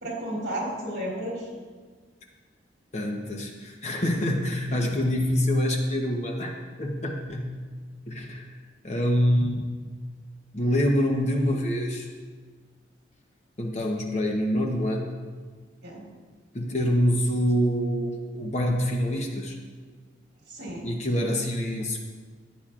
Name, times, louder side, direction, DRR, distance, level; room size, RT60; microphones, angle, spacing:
voice 1, 0.0-1.5 15.8-16.0 20.5-20.9, right 1 dB, 60° right, -3 dB, 3.1 m, -32 dB
voice 2, 2.9-7.5 8.1-8.5 8.8-9.7 10.5-12.1 13.6-15.1 16.5-19.6 20.8-22.0, equal, 35° left, 1 dB, 0.9 m, -26 dB
14.5 x 9.1 x 2.5 m, 1.5 s
head